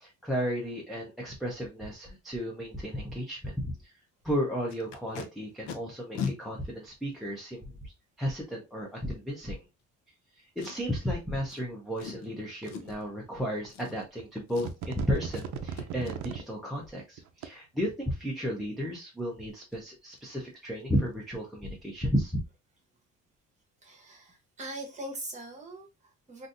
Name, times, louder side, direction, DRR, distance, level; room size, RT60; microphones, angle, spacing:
voice 1, 0.0-3.9 4.2-7.9 8.2-9.6 10.4-22.4, equal, ahead, -2 dB, 0.4 m, -33 dB
Packing tape duct tape, 4.7-5.2 5.7-5.8 6.1-6.3 7.1-7.2 10.6-11.0 11.5-11.6 12.0-12.3 12.6-13.0 13.7-14.2 14.5-14.9 15.3-15.5 15.8-16.1 19.2-19.3 19.6-19.8 20.1-20.3 20.5-20.8 21.1-21.2, left 6 dB, 70° left, 0.7 m, -38 dB
sound 1, 12.6-12.7 13.6-13.7 14.2-14.4 14.7-16.4 17.2-17.5, right 8 dB, 70° right, 0.5 m, -37 dB
voice 2, 23.8-26.5, right 1 dB, 25° right, 2 dB, 1.0 m, -42 dB
3.8 x 2.6 x 2.4 m, 0.25 s
cardioid pair, 180°, 30 cm